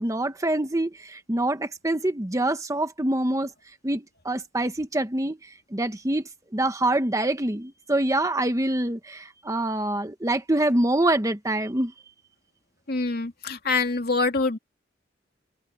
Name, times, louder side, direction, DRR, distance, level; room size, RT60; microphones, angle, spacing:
voice 1, 0.0-3.5 3.8-5.4 5.7-6.2 6.5-11.9, right 1 dB, 15° right, 1.1 m, -25 dB
voice 2, 12.9-14.6, left 3 dB, 55° left, 2.4 m, -25 dB
head